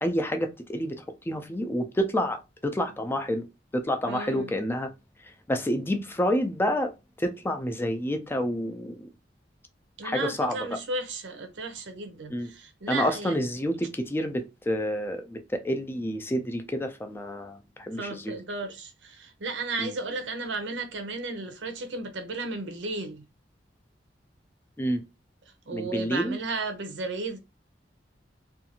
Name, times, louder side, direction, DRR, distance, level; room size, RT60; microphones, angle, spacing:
voice 1, 0.0-3.5 3.7-4.9 5.5-6.9 7.2-9.1 10.0-10.8 12.3-12.5 12.9-18.4 19.8-19.9 24.8-25.0 25.7-26.4, equal, 15° left, 0.3 m, -29 dB
voice 2, 4.0-4.5 10.0-13.3 18.0-23.2 25.7-27.4, right 3 dB, 90° right, 0.6 m, -34 dB
2.5 x 2.3 x 2.8 m
head